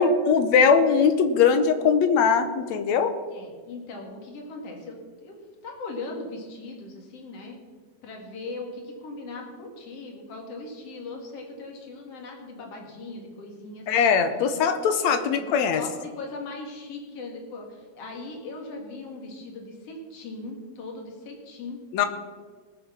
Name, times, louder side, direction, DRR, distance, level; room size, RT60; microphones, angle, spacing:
voice 1, 0.0-3.1 13.9-15.8 21.9-22.1, left 6 dB, 75° left, 9 dB, 2.0 m, -20 dB
voice 2, 3.3-7.6 8.0-13.9 15.2-15.4 15.7-21.8, left 3 dB, 55° left, 2 dB, 3.2 m, -39 dB
19.5 x 7.3 x 5.8 m, 1.5 s
omnidirectional pair, 3.4 m